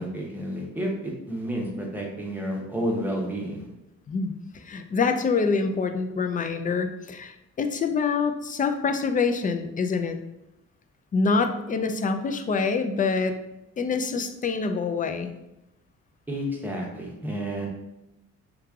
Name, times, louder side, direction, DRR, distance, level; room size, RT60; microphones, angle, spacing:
voice 1, 0.0-3.7 16.3-17.7, equal, 5° right, -2 dB, 0.9 m, -30 dB
voice 2, 4.1-10.2 11.1-13.4 13.8-15.3, left 4 dB, 30° left, 7 dB, 0.4 m, -26 dB
3.1 x 2.3 x 3.6 m, 0.89 s
cardioid pair, 90°, 30 cm